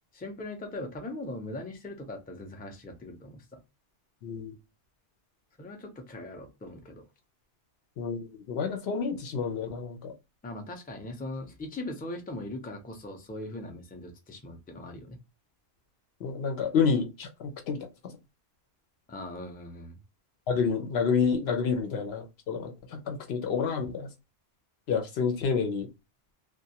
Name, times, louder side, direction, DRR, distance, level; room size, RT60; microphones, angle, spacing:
voice 1, 0.1-3.6 5.6-7.0 10.4-15.2 19.1-20.0, left 2 dB, 15° left, 3 dB, 0.4 m, -40 dB
voice 2, 4.2-4.6 8.0-10.1 16.2-17.8 20.5-24.1 24.9-25.9, left 5 dB, 85° left, 5 dB, 0.9 m, -29 dB
2.4 x 2.2 x 2.7 m, 0.26 s
omnidirectional pair, 1.0 m